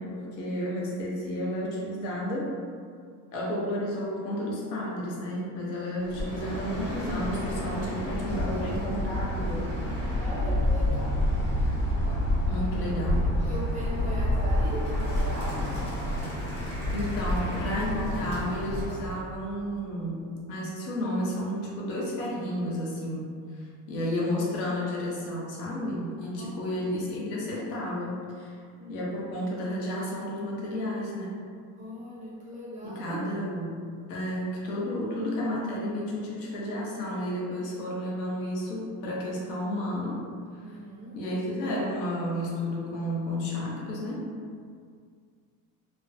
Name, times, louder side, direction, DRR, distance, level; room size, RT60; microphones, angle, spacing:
voice 1, 0.0-2.5 3.3-9.7 12.5-13.4 16.9-28.6 28.9-31.4 32.8-33.8 34.1-40.2 40.5-40.8 41.1-44.3, left 1 dB, 80° left, -4 dB, 0.8 m, -32 dB
Bird, 6.0-19.1, left 1 dB, 15° left, 0.7 m, -28 dB
voice 2, 10.2-11.2 13.4-15.7 26.4-26.6 28.7-29.0 31.8-33.3 40.6-41.2, equal, 20° right, -7 dB, 0.4 m, -39 dB
2.5 x 2.1 x 2.5 m, 2.1 s
cardioid pair, 130°, 44 cm